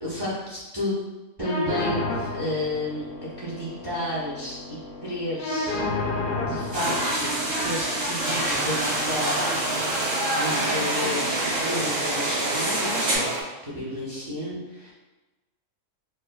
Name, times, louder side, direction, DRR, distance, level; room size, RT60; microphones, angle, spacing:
voice 1, 0.0-1.0 1.4-3.0 3.4-7.3 7.6-9.5 10.3-13.3 13.6-14.9, left 1 dB, 25° right, -9 dB, 0.8 m, -32 dB
sound 1, 1.4-9.4, left 2 dB, 60° left, 0.5 m, -32 dB
sound 2, 6.7-13.2, right 1 dB, 80° right, 1.3 m, -27 dB
sound 3, 8.2-13.4, right 3 dB, 60° right, 0.7 m, -30 dB
4.5 x 2.2 x 2.2 m, 1.1 s
omnidirectional pair, 1.3 m